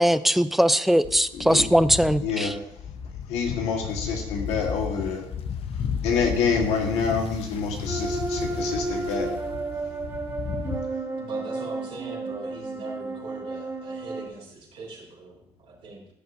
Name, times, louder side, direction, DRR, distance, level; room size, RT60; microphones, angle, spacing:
voice 1, 0.0-2.5, equal, ahead, 13 dB, 0.5 m, -20 dB
sound 1, 1.0-10.8, left 7 dB, 65° left, 0.7 m, -34 dB
voice 2, 1.3-1.6 2.2-2.6 3.3-5.3 6.0-9.3, left 5 dB, 85° left, 2 dB, 1.6 m, -27 dB
sound 2, 7.9-14.3, right 3 dB, 30° right, 2.5 m, -32 dB
voice 3, 11.2-16.0, right 2 dB, 70° right, -8 dB, 3.5 m, -41 dB
15.0 x 6.7 x 2.7 m, 0.76 s
supercardioid pair, 60°, 11 cm